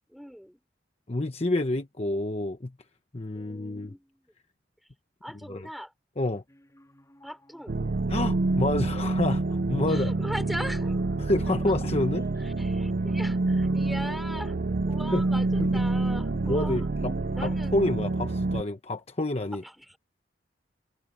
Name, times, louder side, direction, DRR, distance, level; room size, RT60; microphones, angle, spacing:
voice 1, 0.1-0.6 3.3-4.3 4.8-4.9 5.2-5.9 7.2-7.8 9.9-11.0 12.4-14.6 14.9-16.9 17.3-17.8 18.5-18.6 19.5-20.0, equal, ahead, 5.2 m, -40 dB
voice 2, 1.1-2.7 3.1-3.9 5.5-5.6 6.2-6.4 8.1-10.1 11.2-12.3 15.1-15.2 15.6-15.7 16.5-17.1 17.4-19.6, left 2 dB, 35° left, 1.0 m, -28 dB
sound 1, 6.5-17.3, equal, 15° left, 3.6 m, -53 dB
sound 2, 7.7-18.6, right 2 dB, 55° right, 0.6 m, -27 dB
head